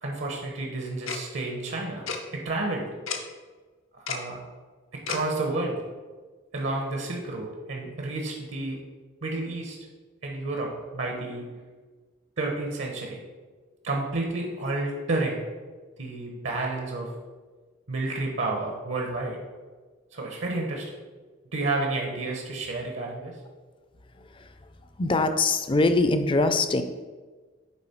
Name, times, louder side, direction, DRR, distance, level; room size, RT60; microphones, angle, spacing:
voice 1, 0.0-2.9 4.1-4.4 5.1-5.8 6.5-8.8 9.2-9.8 10.2-11.4 12.4-13.2 13.8-15.4 16.0-17.1 17.9-19.4 20.1-20.8 21.5-23.3, right 2 dB, 70° right, 1 dB, 1.0 m, -30 dB
Tick-tock, 1.1-1.2 2.1-2.2 3.1-3.2 4.1-4.2 5.1-5.2, left 6 dB, 90° left, 0.8 m, -31 dB
voice 2, 24.2-24.5 25.0-26.8, left 3 dB, 25° left, 9 dB, 0.4 m, -23 dB
9.0 x 3.5 x 4.4 m, 1.4 s
head